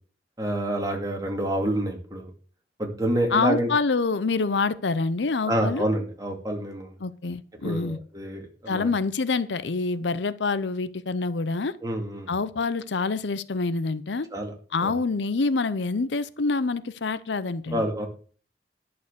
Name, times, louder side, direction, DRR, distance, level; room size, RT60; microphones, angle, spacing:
voice 1, 0.4-2.3 2.8-3.7 5.5-6.9 7.6-8.9 11.8-12.3 14.3-14.5 14.8-15.0 17.7-18.1, right 1 dB, 20° right, 2.4 m, -28 dB
voice 2, 3.3-5.9 7.0-8.0 8.7-11.8 12.3-14.3 14.7-17.8, left 4 dB, 80° left, 0.7 m, -26 dB
11.0 x 6.8 x 6.7 m
head